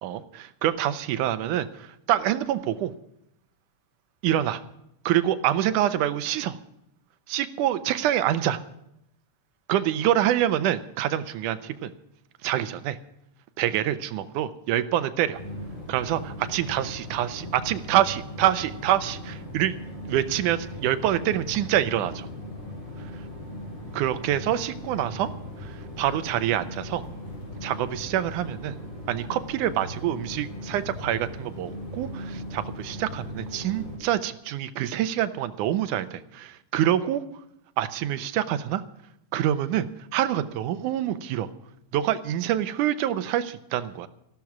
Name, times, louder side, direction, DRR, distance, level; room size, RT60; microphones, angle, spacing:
voice 1, 0.0-2.9 4.2-4.6 5.1-6.6 7.3-8.6 9.7-11.9 12.4-13.0 13.6-15.4 15.9-19.8 20.1-22.3 23.9-25.3 25.6-27.1 27.6-28.8 29.1-37.2 37.8-38.8 39.3-39.9 40.1-41.5 41.9-44.1, right 12 dB, 90° right, 13 dB, 2.4 m, -26 dB
sound 1, 15.3-34.0, left 1 dB, 55° left, 5.5 m, -38 dB
14.5 x 12.5 x 6.0 m, 0.79 s
omnidirectional pair, 3.5 m